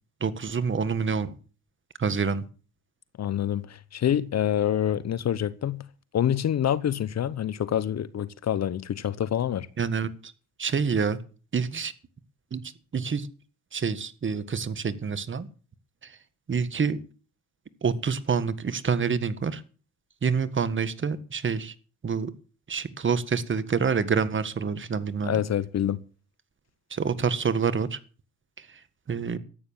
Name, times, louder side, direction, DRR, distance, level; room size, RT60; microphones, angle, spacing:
voice 1, 0.2-1.4 2.0-2.4 9.8-10.3 10.6-11.2 11.5-11.9 12.5-12.6 12.9-13.3 13.7-15.5 16.0-16.2 16.5-17.0 17.8-19.6 20.2-21.7 22.0-22.3 22.7-25.4 26.9-28.0 28.6-28.8 29.1-29.4, right 6 dB, 40° right, 1.7 m, -27 dB
voice 2, 3.2-5.8 6.1-9.7 25.3-26.0, left 10 dB, 55° left, 0.9 m, -26 dB
14.0 x 9.4 x 7.4 m
cardioid pair, 75°, 32 cm